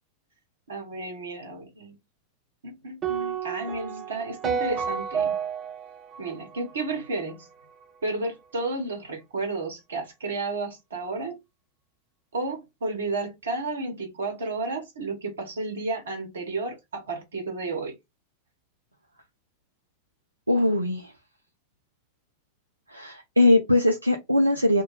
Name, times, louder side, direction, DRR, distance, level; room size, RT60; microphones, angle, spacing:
voice 1, 0.7-2.0 2.6-5.4 6.2-7.5 8.0-11.4 12.3-18.0, right 3 dB, 65° right, 1.0 m, -32 dB
sound 1, 3.0-7.3, right 7 dB, 25° right, 0.8 m, -31 dB
voice 2, 20.5-21.1 22.9-24.8, left 1 dB, 85° right, 0.3 m, -21 dB
2.3 x 2.2 x 3.1 m
figure-of-eight pair, 90°, 0 cm